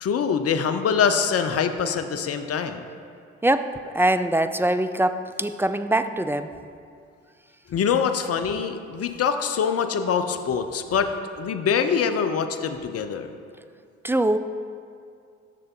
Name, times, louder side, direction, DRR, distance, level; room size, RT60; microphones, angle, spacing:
voice 1, 0.0-2.8 7.7-13.3, left 6 dB, 45° left, 8 dB, 0.8 m, -24 dB
voice 2, 3.4-6.5 14.0-14.4, right 1 dB, 5° right, 10 dB, 0.4 m, -23 dB
10.5 x 6.5 x 3.8 m, 2.3 s
hypercardioid pair, 50°, 32 cm